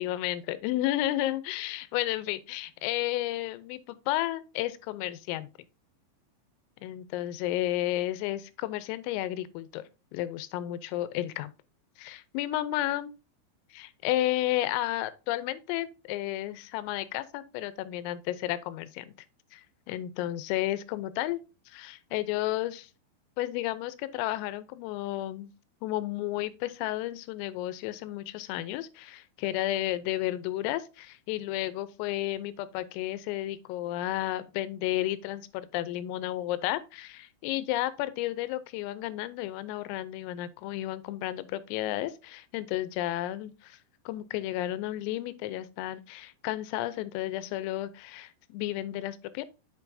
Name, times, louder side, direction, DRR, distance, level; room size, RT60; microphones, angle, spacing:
voice 1, 0.0-5.5 6.8-9.8 10.1-11.5 12.0-13.1 13.7-19.1 19.5-22.9 23.4-25.5 25.8-43.8 44.1-49.4, left 14 dB, 90° left, 3.4 m, -32 dB
7.9 x 6.8 x 2.6 m
omnidirectional pair, 5.8 m